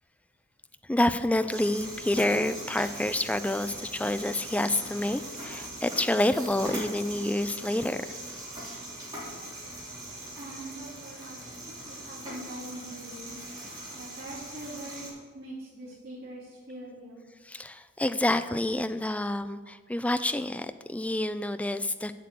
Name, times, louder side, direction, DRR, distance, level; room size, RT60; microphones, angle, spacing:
voice 1, 0.9-8.1 17.5-22.1, left 1 dB, 5° left, 11 dB, 0.4 m, -28 dB
sound 1, 1.5-15.1, right 1 dB, 20° right, 3.7 m, -41 dB
voice 2, 10.4-13.4 13.9-15.0 15.3-17.3, right 1 dB, 50° right, -9 dB, 2.9 m, -43 dB
7.8 x 7.6 x 8.2 m, 1.4 s
head